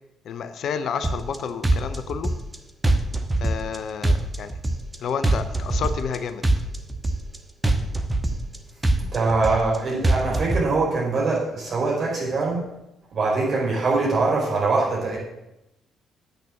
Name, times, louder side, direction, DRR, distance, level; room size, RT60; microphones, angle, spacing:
voice 1, 0.2-2.3 3.4-4.6 5.0-6.5, left 6 dB, 60° left, 11 dB, 0.6 m, -30 dB
sound 1, 1.0-1.4 1.6-2.6 2.8-3.8 4.0-5.0 5.2-6.2 6.4-7.4 7.6-8.6 8.8-9.8 10.0-10.6, right 2 dB, 20° right, 1.1 m, -22 dB
voice 2, 9.0-12.7 13.1-15.2, right 3 dB, 50° right, -3 dB, 4.7 m, -23 dB
8.3 x 6.6 x 7.5 m, 0.88 s
figure-of-eight pair, 45°, 0 cm